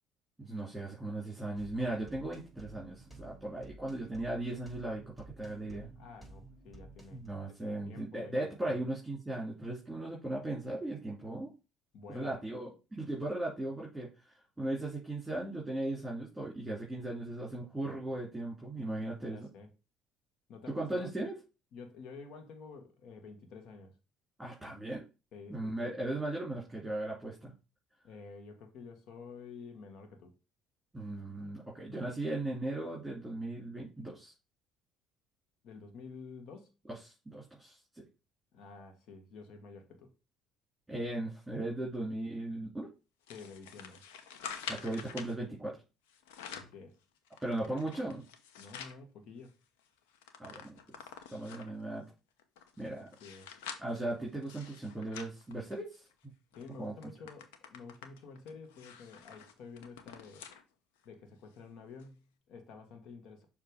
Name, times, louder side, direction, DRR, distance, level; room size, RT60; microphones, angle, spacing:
voice 1, 0.4-5.0 5.4-5.9 7.1-11.5 12.1-19.5 20.7-21.3 24.4-25.0 25.5-27.5 30.9-34.3 36.9-38.0 40.9-42.9 44.7-45.8 47.4-48.2 50.4-51.0 51.3-52.0 52.8-53.1 53.8-56.0 56.8-56.9, right 2 dB, 10° right, 2.6 m, -37 dB
sound 1, 1.5-7.3, right 2 dB, 10° left, 3.9 m, -53 dB
voice 2, 6.0-7.2 7.5-8.8 11.9-12.3 19.3-19.7 20.5-21.1 21.7-23.9 25.3-25.9 28.0-30.4 35.6-36.7 38.5-40.1 43.3-44.0 46.5-47.0 48.6-49.5 53.0-53.6 56.6-60.5 61.0-63.4, left 4 dB, 65° left, 1.4 m, -50 dB
sound 2, 43.3-45.3 46.1-46.8 47.3-49.0 49.4-49.5 49.8-51.8 52.4-56.1 56.5-56.7 57.0-60.6 61.0-61.1 62.0-62.1, left 7 dB, 85° left, 0.7 m, -47 dB
6.7 x 2.8 x 5.0 m
hypercardioid pair, 70°, 0 cm